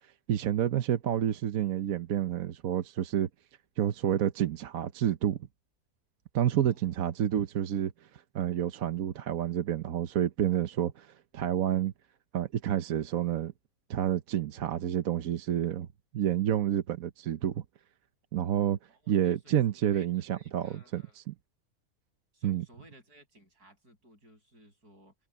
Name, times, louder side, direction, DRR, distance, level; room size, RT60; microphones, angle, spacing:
voice 1, 0.3-3.3 3.8-5.4 6.3-11.9 12.3-13.5 13.9-15.9 16.1-17.6 18.3-18.8 19.1-21.3 22.4-22.6, right 10 dB, 65° right, 1.3 m, -29 dB
voice 2, 18.9-19.6 19.9-21.2 22.3-25.1, equal, 85° right, 8.2 m, -58 dB
omnidirectional pair, 1.6 m